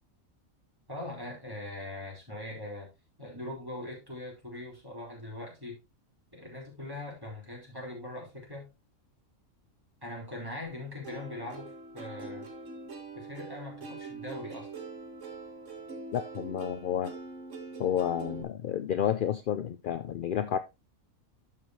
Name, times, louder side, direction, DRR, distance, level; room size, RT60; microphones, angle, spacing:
voice 1, 0.9-2.9 3.2-5.8 6.3-8.7 10.0-12.5 13.1-14.7, left 1 dB, 15° right, 4.6 m, -41 dB
Plucked string instrument, 11.0-18.4, right 3 dB, 60° right, 1.8 m, -43 dB
voice 2, 16.1-17.1 17.8-20.6, left 9 dB, 65° left, 0.5 m, -30 dB
12.0 x 5.7 x 3.1 m
omnidirectional pair, 1.4 m